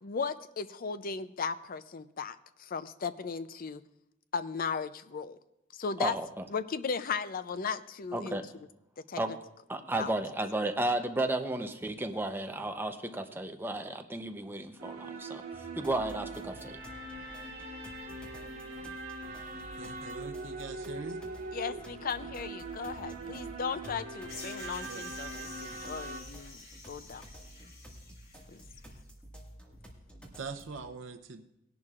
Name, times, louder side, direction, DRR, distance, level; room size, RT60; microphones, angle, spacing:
voice 1, 0.0-3.8 4.3-5.4 5.7-6.2 6.5-8.4 9.1-9.2 10.0-10.1 21.5-27.3 28.5-28.6, left 5 dB, 50° left, 13 dB, 0.5 m, -36 dB
voice 2, 6.0-6.4 8.1-8.4 9.2-9.3 9.7-15.4 15.8-16.8, right 2 dB, 10° right, 6 dB, 0.7 m, -33 dB
sound 1, 14.8-26.2, right 3 dB, 55° right, 2.9 m, -42 dB
sound 2, 15.8-30.8, equal, 5° left, 1.8 m, -52 dB
voice 3, 19.5-21.2 24.9-25.1 30.2-31.5, right 4 dB, 75° right, 6 dB, 0.7 m, -43 dB
sound 3, 24.3-29.0, left 3 dB, 85° left, 3.1 m, -49 dB
19.5 x 11.0 x 2.5 m, 0.85 s
head